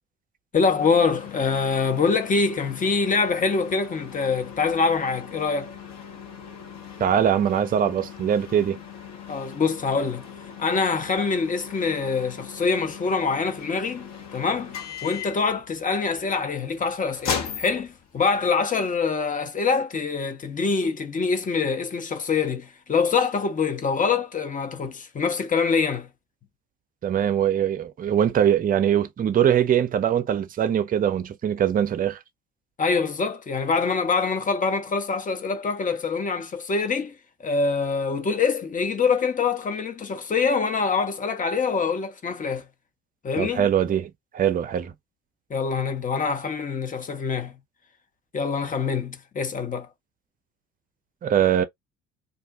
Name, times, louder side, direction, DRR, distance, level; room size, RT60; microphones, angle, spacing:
voice 1, 0.5-5.7 9.3-10.3 10.6-14.7 15.0-26.1 32.8-37.1 37.4-42.6 43.2-43.7 45.5-47.5 48.3-49.9, left 5 dB, 25° left, 0.7 m, -25 dB
sound 1, 0.8-18.5, left 7 dB, 50° left, 1.0 m, -39 dB
voice 2, 7.0-8.8 27.0-32.2 43.4-44.9 51.2-51.6, right 9 dB, 25° right, 0.6 m, -22 dB
2.4 x 2.1 x 2.6 m
figure-of-eight pair, 55°, 35 cm